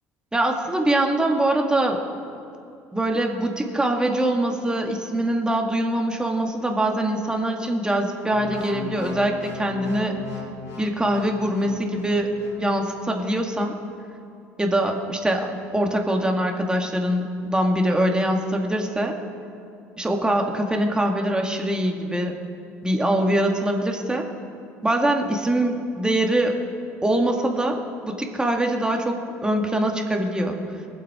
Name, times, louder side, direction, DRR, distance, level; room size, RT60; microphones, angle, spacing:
voice 1, 0.3-2.0 2.9-10.1 10.8-12.3 12.6-13.8 14.6-19.2 20.0-22.3 22.8-24.3 24.8-26.6 27.0-30.6, right 1 dB, 10° right, 2 dB, 2.3 m, -23 dB
sound 1, 8.3-12.6 13.2-13.4, left 3 dB, 55° left, 3.5 m, -37 dB
23.5 x 8.1 x 4.6 m, 2.5 s
hypercardioid pair, 65°, 7 cm